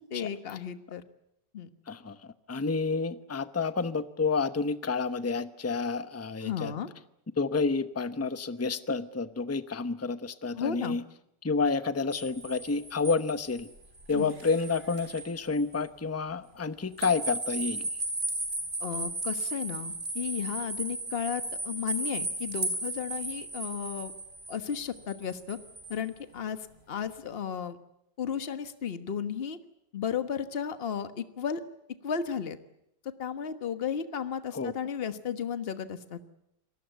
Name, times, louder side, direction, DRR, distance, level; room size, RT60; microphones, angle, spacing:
voice 1, 0.1-1.0 1.5-1.7 6.4-6.9 10.5-11.0 14.1-14.4 18.8-24.1 24.5-25.6 25.9-27.8 28.2-29.6 29.9-31.6 32.0-32.6 33.0-36.2, left 7 dB, 35° left, 10 dB, 1.4 m, -34 dB
voice 2, 1.9-2.2 2.5-6.7 7.4-11.0 11.4-13.7 14.1-17.9 34.5-34.7, left 4 dB, 15° left, 12 dB, 0.5 m, -29 dB
sound 1, 12.1-15.3 15.7-15.8 17.0-26.0, right 2 dB, 25° right, 4.1 m, -36 dB
27.0 x 19.5 x 8.1 m, 0.82 s
omnidirectional pair, 1.9 m